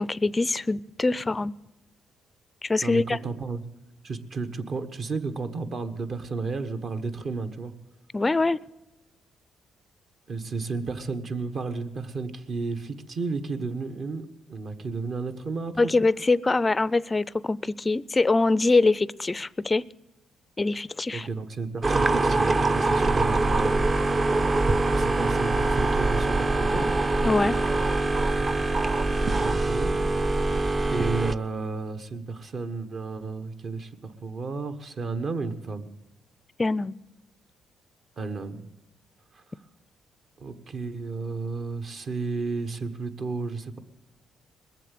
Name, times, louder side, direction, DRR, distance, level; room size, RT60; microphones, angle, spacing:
voice 1, 0.0-1.5 2.6-3.2 8.1-8.6 15.8-19.8 20.6-21.3 27.2-27.6 36.6-36.9, left 3 dB, 20° left, 0.4 m, -23 dB
voice 2, 2.8-3.6 4.0-7.7 10.3-15.9 21.1-24.2 24.8-26.9 29.4-30.0 30.9-33.9 34.2-35.9 38.2-38.7 39.3-39.4 40.4-43.8, right 4 dB, 50° right, 1.4 m, -32 dB
sound 1, 21.8-31.3, right 2 dB, 30° right, 0.7 m, -23 dB
21.0 x 7.6 x 8.3 m
cardioid pair, 90°, 0 cm